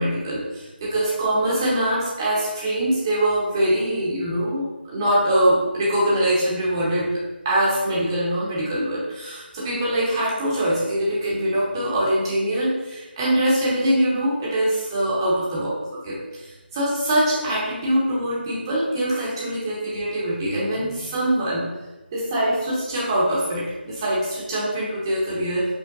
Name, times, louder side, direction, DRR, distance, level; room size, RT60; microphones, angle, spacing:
voice 1, 0.0-7.1 7.4-15.6 16.0-16.1 16.4-21.6 22.1-25.7, right 1 dB, 20° right, -7 dB, 0.9 m, -23 dB
5.2 x 2.0 x 3.9 m, 1.1 s
figure-of-eight pair, 160°, 6 cm